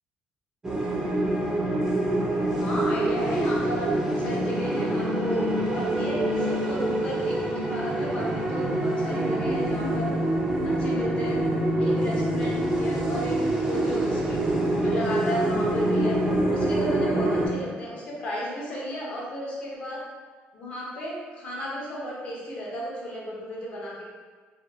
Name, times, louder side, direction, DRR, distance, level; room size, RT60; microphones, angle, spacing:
sound 1, 0.6-17.5, right 1 dB, 15° right, 0.4 m, -25 dB
voice 1, 2.6-7.4 7.7-10.1 10.6-11.4 11.8-14.3 14.7-16.1 16.5-20.0 20.5-24.0, equal, 35° left, -5 dB, 0.6 m, -33 dB
2.6 x 2.2 x 2.5 m, 1.5 s
cardioid pair, 165°, 4 cm